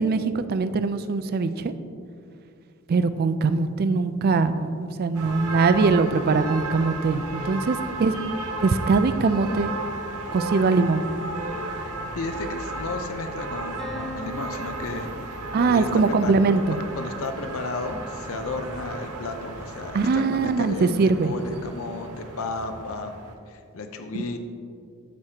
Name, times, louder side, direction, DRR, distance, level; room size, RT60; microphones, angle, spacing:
voice 1, 0.0-1.7 2.9-8.2 8.6-9.7 10.3-11.1 15.5-16.8 19.9-21.3, right 4 dB, 45° right, 11 dB, 0.3 m, -22 dB
sound 1, 5.1-23.3, right 2 dB, 90° right, 0.7 m, -34 dB
sound 2, 11.5-13.1 13.8-15.7, left 1 dB, ahead, 1.2 m, -42 dB
voice 2, 11.8-16.4 16.7-23.1 23.5-24.4, left 3 dB, 65° left, 6 dB, 0.6 m, -34 dB
12.5 x 4.9 x 2.8 m, 2.4 s
head